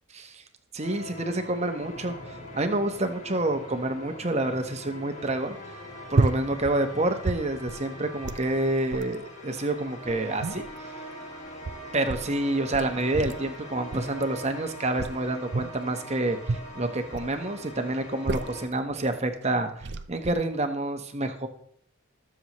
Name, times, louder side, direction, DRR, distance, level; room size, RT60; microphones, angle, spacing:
voice 1, 0.1-0.4 0.7-2.2 2.5-5.6 6.1-10.6 11.9-16.4 16.7-21.5, right 2 dB, 30° right, 7 dB, 1.1 m, -28 dB
sound 1, 0.8-18.7, equal, 35° left, 2.9 m, -42 dB
sound 2, 6.1-6.8 7.1-7.9 8.2-8.5 8.9-9.2 9.8-10.8 11.5-12.3 12.7-13.5 13.9-14.2 15.0-15.8 16.4-17.4 18.0-18.7 19.4-19.5 19.8-20.3, right 3 dB, 50° right, 0.6 m, -31 dB
20.5 x 7.2 x 3.1 m, 0.66 s
head